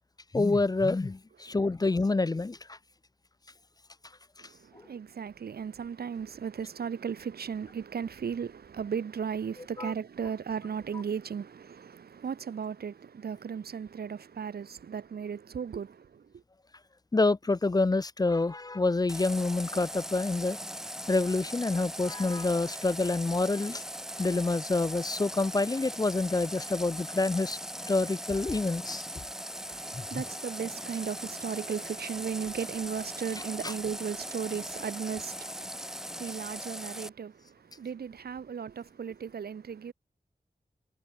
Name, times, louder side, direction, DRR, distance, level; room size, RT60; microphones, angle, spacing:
voice 1, 0.3-2.8 9.8-9.9 17.1-20.6 21.1-23.8 24.2-27.6 27.9-29.1 29.9-30.2 33.6-33.7, left 3 dB, 25° left, 0.5 m, -27 dB
voice 2, 4.4-16.2 29.6-39.9, right 7 dB, 85° right, 0.9 m, -36 dB
Water tap faucet, 19.1-37.1, equal, 5° right, 5.4 m, -40 dB
cardioid pair, 50°, 16 cm